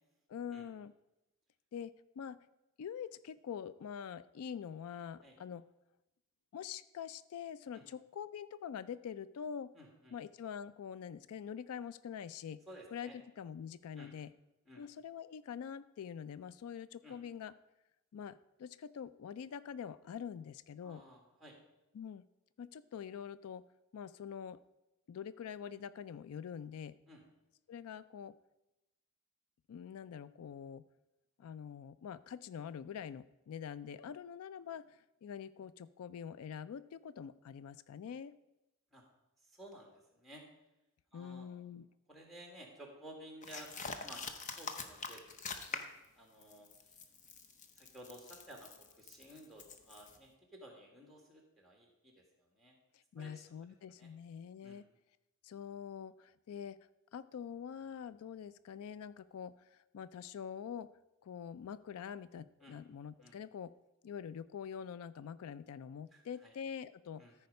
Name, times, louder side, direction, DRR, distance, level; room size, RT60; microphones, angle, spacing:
voice 1, 0.3-0.9 1.7-2.4 2.8-5.6 6.5-9.7 10.1-12.6 12.9-13.1 13.4-14.3 14.8-17.5 18.1-21.0 21.9-22.2 22.6-23.6 23.9-24.6 25.1-27.0 27.7-28.4 29.7-30.8 31.4-38.4 41.1-41.9 52.9-54.9 55.4-56.8 57.1-60.9 61.2-63.7 64.0-67.2, left 7 dB, 85° left, 17 dB, 0.3 m, -45 dB
voice 2, 9.7-10.2 12.7-13.2 14.0-14.1 14.7-14.8 17.0-17.2 20.8-21.6 27.1-27.2 38.9-39.0 39.4-40.4 41.1-41.5 42.1-43.7 44.0-45.8 46.2-47.0 47.8-52.8 53.2-53.4 53.9-54.1 54.6-54.8 62.6-62.8 63.2-63.4 66.1-66.5 67.2-67.4, right 1 dB, ahead, 0 dB, 1.7 m, -55 dB
sound 1, 43.4-46.0 46.4-50.2, left 4 dB, 35° left, 0.7 m, -45 dB
13.5 x 4.8 x 5.3 m, 0.95 s
head